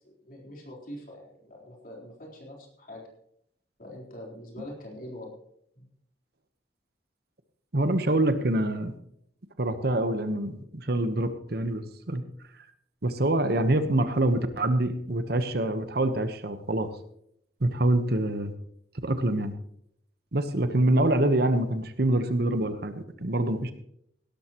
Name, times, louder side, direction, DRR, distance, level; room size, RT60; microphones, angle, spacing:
voice 1, 0.0-3.0 3.8-5.3 5.8-5.9, left 1 dB, 50° left, -1 dB, 4.0 m, -43 dB
voice 2, 7.7-8.9 9.6-12.2 13.0-16.9 17.6-18.5 19.0-19.5 20.3-23.7, right 1 dB, 60° right, 10 dB, 1.1 m, -25 dB
17.0 x 13.0 x 3.1 m, 0.71 s
head